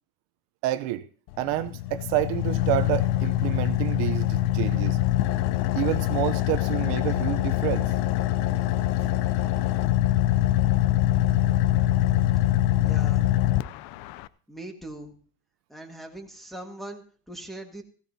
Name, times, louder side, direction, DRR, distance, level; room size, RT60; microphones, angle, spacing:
voice 1, 0.6-1.1 1.4-5.0 5.8-7.9 9.0-9.1, right 15 dB, 65° right, 0.7 m, -29 dB
Car / Idling, 1.3-14.3, left 14 dB, 55° left, 0.5 m, -24 dB
voice 2, 12.8-13.3 14.5-15.1 15.7-17.8, right 1 dB, ahead, 1.7 m, -40 dB
16.0 x 16.0 x 2.7 m
cardioid pair, 140°, 45 cm